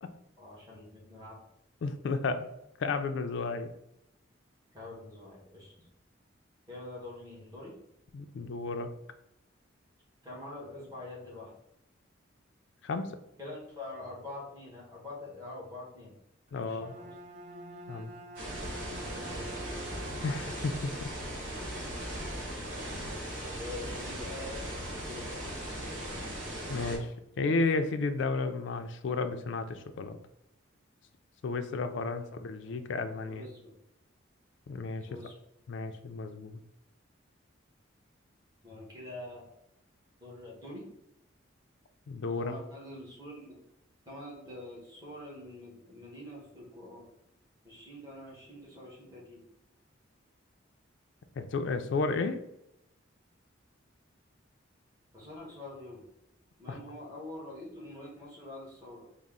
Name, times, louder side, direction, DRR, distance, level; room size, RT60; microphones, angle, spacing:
voice 1, 0.4-1.4 4.7-5.9 6.7-7.7 10.2-11.5 13.4-16.2 16.5-17.1 19.0-19.9 23.6-24.7 25.1-25.3 32.1-32.3 32.7-32.8 33.3-33.7 35.0-35.4 38.6-39.5 40.2-40.9 42.3-43.6 44.0-47.1 47.6-49.4 55.1-56.0 56.6-59.1, left 2 dB, 15° right, -5 dB, 1.2 m, -45 dB
voice 2, 1.8-2.5 2.8-3.7 8.1-8.9 12.8-13.1 16.5-16.9 17.9-18.1 20.1-21.1 26.7-27.1 27.4-30.2 31.4-33.5 34.7-35.1 35.7-36.6 42.1-42.6 51.4-52.4 56.7-56.8, left 3 dB, 65° left, 8 dB, 0.3 m, -32 dB
Bowed string instrument, 16.5-20.8, right 1 dB, 35° right, 0.3 m, -47 dB
sound 1, 18.4-27.0, equal, 65° right, 1.2 m, -38 dB
4.0 x 2.0 x 3.6 m, 0.82 s
head